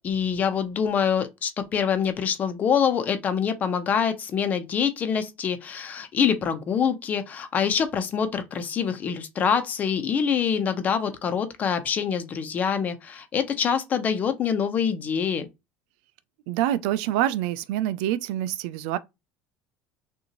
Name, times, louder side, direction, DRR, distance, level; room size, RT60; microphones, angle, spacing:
voice 1, 0.0-15.5, left 7 dB, 35° left, 0.9 m, -25 dB
voice 2, 16.5-19.0, right 12 dB, 85° right, 0.5 m, -26 dB
6.5 x 2.7 x 3.0 m
cardioid pair, 135°, 5 cm